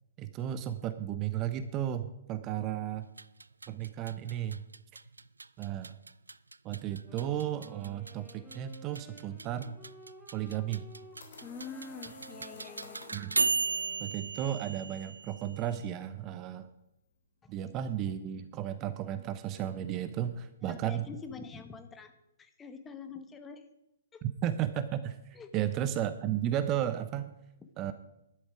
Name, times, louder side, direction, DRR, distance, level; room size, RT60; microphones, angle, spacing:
voice 1, 0.2-3.1 3.7-4.6 5.6-5.9 6.6-9.8 10.3-10.8 13.1-13.4 14.0-16.7 17.5-21.1 24.4-27.3 27.8-27.9, right 11 dB, 30° right, 12 dB, 0.8 m, -34 dB
sound 1, 3.1-15.8, right 4 dB, 80° right, 0.4 m, -37 dB
Wind instrument woodwind instrument, 7.0-14.6, right 1 dB, 5° right, 2.6 m, -54 dB
sound 2, 10.8-13.3, left 4 dB, 55° left, 3.5 m, -52 dB
voice 2, 11.4-13.0 17.4-17.5 20.6-22.1 22.4-23.6 24.1-24.2 25.3-25.7 27.6-27.7, left 5 dB, 15° left, 8 dB, 1.3 m, -45 dB
12.0 x 10.5 x 4.9 m, 0.88 s
figure-of-eight pair, 120°, 0 cm